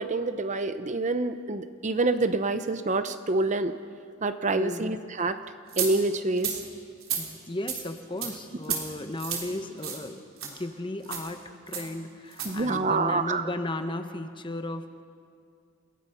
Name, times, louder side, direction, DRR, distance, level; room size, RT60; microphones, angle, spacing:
voice 1, 0.0-3.7 4.2-5.4 5.8-6.6 12.4-13.5, right 3 dB, 35° right, 10 dB, 0.7 m, -27 dB
voice 2, 4.5-4.9 7.2-15.0, left 1 dB, 20° left, 8 dB, 1.0 m, -35 dB
sound 1, 5.7-5.9 6.4-6.6 7.0-7.2 7.7-7.8 8.2-8.3 8.6-8.8 9.2-9.4 9.8-10.0 10.4-10.5 11.0-11.3 11.7-11.9 12.3-12.5, right 8 dB, 70° right, 3.4 m, -31 dB
29.0 x 16.5 x 5.8 m, 2.3 s
head